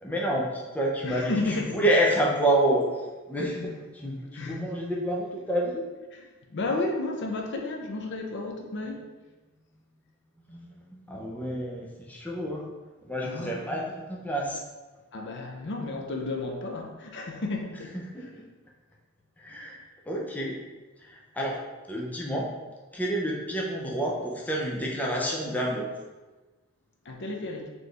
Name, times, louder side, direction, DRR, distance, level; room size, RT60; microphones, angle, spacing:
voice 1, 0.0-5.8 10.5-12.7 13.0-14.6 17.9-18.3 19.4-20.6 21.0-21.6 21.9-22.5 22.9-25.9, right 1 dB, 10° left, -3 dB, 0.5 m, -29 dB
voice 2, 1.0-1.8 3.5-3.7 4.3-4.7 6.1-9.0 13.2-13.9 15.1-18.0 27.0-27.7, left 2 dB, 60° left, 2 dB, 0.6 m, -33 dB
4.1 x 3.2 x 3.3 m, 1.2 s
head